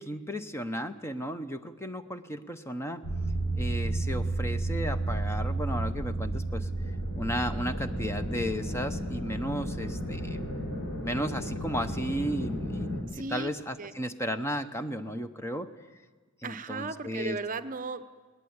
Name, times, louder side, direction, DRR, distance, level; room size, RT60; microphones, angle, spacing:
voice 1, 0.0-3.0 3.6-6.7 7.2-10.4 11.0-15.7 16.4-17.4, equal, 10° left, 9 dB, 0.8 m, -34 dB
sound 1, 3.0-13.0, right 1 dB, 65° left, 4.2 m, -32 dB
voice 2, 9.6-10.0 13.1-13.5 13.8-13.9 16.4-18.2, right 3 dB, 35° right, 11 dB, 0.8 m, -37 dB
20.5 x 19.0 x 9.6 m, 1.4 s
head